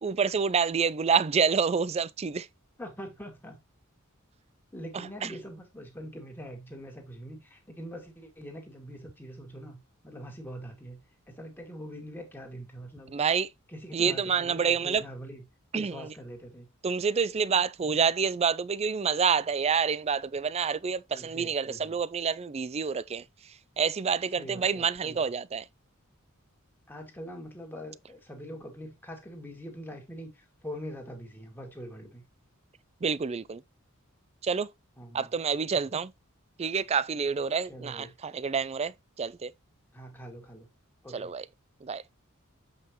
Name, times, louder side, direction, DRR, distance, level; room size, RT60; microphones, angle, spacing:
voice 1, 0.0-2.5 5.2-5.3 13.1-13.5 13.9-15.0 15.7-16.1 16.8-23.2 23.8-25.6 33.0-33.6 34.4-34.7 35.1-36.1 36.6-38.9 39.2-39.5 41.1-41.4 41.8-42.0, right 6 dB, 30° right, 0.4 m, -27 dB
voice 2, 2.8-3.6 4.7-11.0 11.3-13.1 13.7-15.4 15.7-16.7 21.1-22.0 24.3-25.2 26.9-32.2 35.0-35.3 37.7-38.1 39.9-40.7 41.0-41.3, equal, 10° left, 2.2 m, -43 dB
7.9 x 5.5 x 3.1 m
head